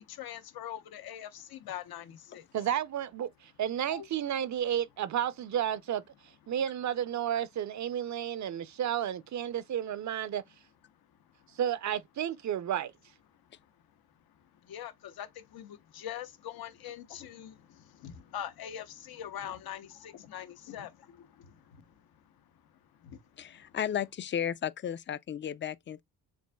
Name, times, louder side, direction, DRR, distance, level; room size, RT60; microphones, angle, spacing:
voice 1, 0.0-2.5 3.9-4.1 14.6-21.9 23.0-23.8, left 10 dB, 80° left, 0.9 m, -43 dB
voice 2, 2.5-6.0 6.5-10.4 11.6-12.9, right 10 dB, 50° right, 0.5 m, -32 dB
voice 3, 23.4-26.0, left 9 dB, 35° left, 0.4 m, -34 dB
7.1 x 2.5 x 2.2 m
cardioid pair, 95°, 36 cm